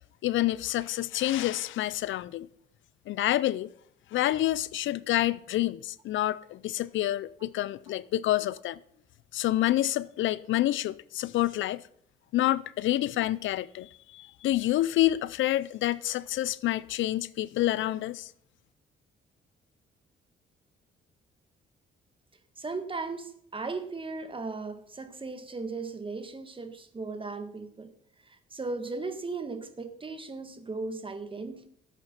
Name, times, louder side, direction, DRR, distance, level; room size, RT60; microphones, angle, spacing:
voice 1, 0.2-2.5 3.1-3.7 4.1-8.8 9.3-11.8 12.3-18.3, left 14 dB, 75° left, 0.5 m, -28 dB
voice 2, 22.6-27.9 28.2-31.7, right 3 dB, 25° right, 1.5 m, -37 dB
13.5 x 8.1 x 5.7 m
cardioid pair, 90°, 20 cm